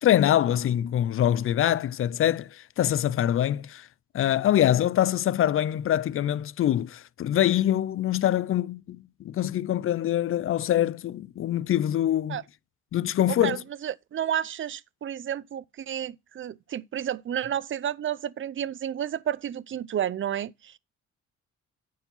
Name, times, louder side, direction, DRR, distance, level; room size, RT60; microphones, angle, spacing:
voice 1, 0.0-3.9 4.1-12.4 12.9-13.6, left 11 dB, 45° left, 0.4 m, -24 dB
voice 2, 13.8-20.7, right 10 dB, 40° right, 0.5 m, -31 dB
9.2 x 4.8 x 5.4 m
cardioid pair, 90°, 30 cm